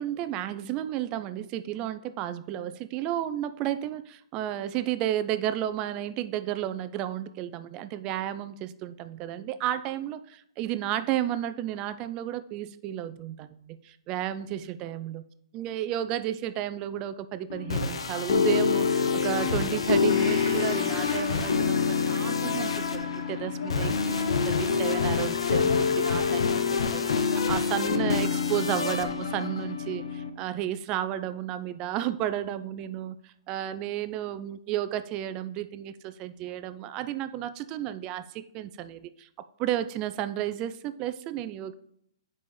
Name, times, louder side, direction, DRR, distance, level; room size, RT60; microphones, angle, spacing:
voice 1, 0.0-15.2 15.5-26.6 26.9-39.3 39.6-41.7, right 12 dB, 25° right, 12 dB, 0.3 m, -32 dB
sound 1, 17.5-30.3, left 5 dB, 85° left, 0.8 m, -26 dB
Gong, 20.1-27.7 28.1-28.2, left 1 dB, 45° left, 2.0 m, -46 dB
7.5 x 5.4 x 3.1 m, 0.70 s
hypercardioid pair, 155°, 3 cm